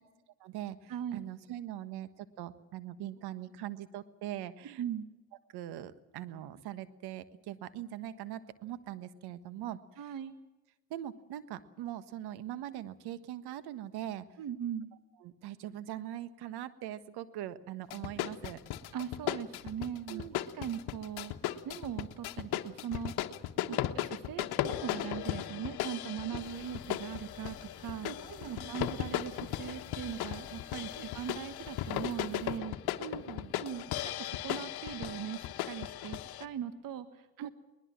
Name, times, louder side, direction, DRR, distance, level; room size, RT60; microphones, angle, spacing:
voice 1, 0.4-4.8 5.5-9.8 10.0-10.1 10.9-14.2 15.2-18.6 20.1-20.4 23.7-23.9 26.3-26.4 28.0-28.7 31.0-31.1 33.0-33.5 37.4-37.5, right 12 dB, 70° right, 14 dB, 1.5 m, -42 dB
voice 2, 4.8-5.1 10.0-10.3 14.4-14.9 18.9-20.2 20.5-21.3 21.6-23.1 23.7-32.8 33.5-37.5, right 9 dB, 55° right, 11 dB, 1.5 m, -40 dB
sound 1, 17.9-36.4, left 13 dB, 65° left, 1.3 m, -37 dB
sound 2, 26.4-32.6, left 6 dB, 35° left, 2.9 m, -53 dB
21.5 x 20.0 x 7.5 m, 1.1 s
supercardioid pair, 65°, 40 cm